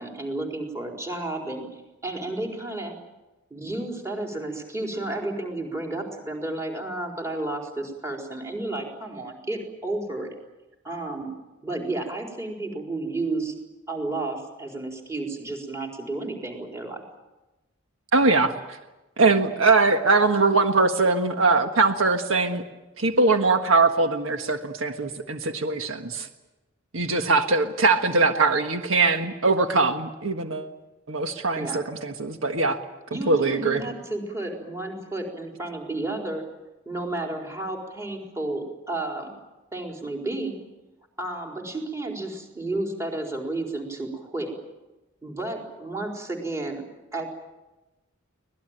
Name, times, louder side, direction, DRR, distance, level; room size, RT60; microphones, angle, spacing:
voice 1, 0.0-1.6 2.0-2.9 3.5-10.3 10.8-11.3 11.6-13.5 13.9-17.0 31.6-31.8 33.1-36.4 36.9-39.3 39.7-40.6 41.2-44.5 45.2-46.8 47.1-47.3, right 2 dB, 15° right, 1 dB, 4.3 m, -32 dB
voice 2, 18.1-18.5 19.2-22.6 23.0-26.3 26.9-30.7 31.1-32.8 33.3-33.8, right 3 dB, 75° right, 6 dB, 1.6 m, -21 dB
24.5 x 19.0 x 9.0 m, 1.1 s
head